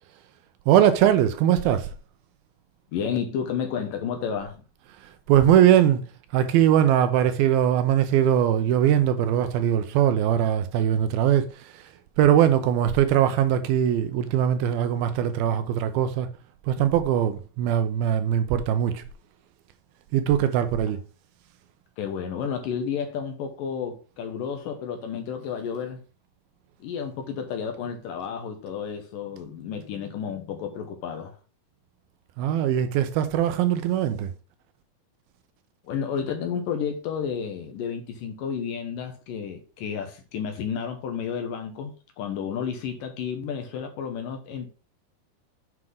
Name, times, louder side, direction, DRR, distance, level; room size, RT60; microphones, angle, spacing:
voice 1, 0.7-1.9 5.0-6.0 6.3-16.3 16.6-19.0 20.1-21.0 32.4-34.3, right 10 dB, 80° right, 2.4 m, -21 dB
voice 2, 2.9-4.6 22.0-26.0 26.8-31.4 35.8-44.7, left 7 dB, 70° left, 2.4 m, -31 dB
7.7 x 5.9 x 3.7 m
omnidirectional pair, 4.6 m